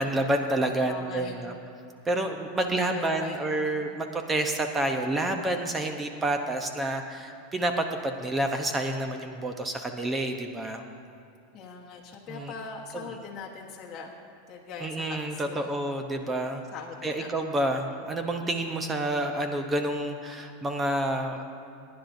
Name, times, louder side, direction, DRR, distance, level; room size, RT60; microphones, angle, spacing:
voice 1, 0.0-1.5 2.1-10.8 12.3-12.5 12.9-13.0 14.8-16.6 17.0-21.4, right 1 dB, 15° right, 5 dB, 0.7 m, -29 dB
voice 2, 0.9-1.4 2.6-3.8 11.5-14.1 14.5-15.8 16.7-17.3, left 5 dB, 30° left, -3 dB, 1.2 m, -41 dB
20.0 x 10.5 x 2.7 m, 2.6 s
supercardioid pair, 130°, 0 cm